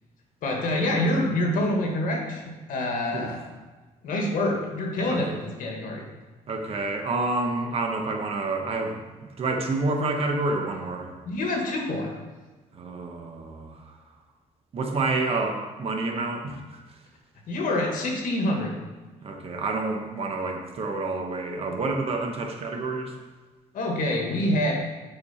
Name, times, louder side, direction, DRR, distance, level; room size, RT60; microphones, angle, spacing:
voice 1, 0.4-2.4 2.7-3.4 4.0-6.0 11.2-12.1 17.5-18.7 23.7-24.7, left 1 dB, 70° left, 1 dB, 1.6 m, -26 dB
voice 2, 6.5-9.0 9.4-11.1 12.7-13.7 14.7-16.6 19.2-23.1, right 3 dB, 45° right, 3 dB, 0.9 m, -28 dB
8.2 x 4.9 x 4.2 m, 1.2 s
cardioid pair, 165°, 14 cm